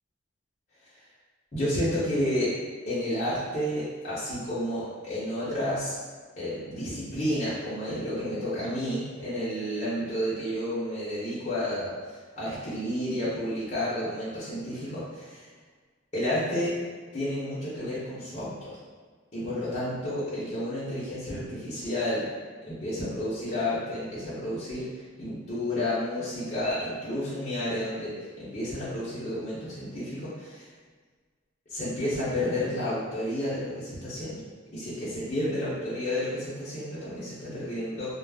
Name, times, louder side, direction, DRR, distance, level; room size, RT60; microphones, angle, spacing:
voice 1, 1.5-2.5 2.9-5.9 6.4-11.9 12.4-15.4 16.1-16.7 17.1-18.8 19.3-22.3 22.6-24.9 25.2-30.7 31.7-34.4 34.7-38.2, left 1 dB, 35° left, -10 dB, 0.7 m, -31 dB
2.3 x 2.0 x 3.3 m, 1.5 s
head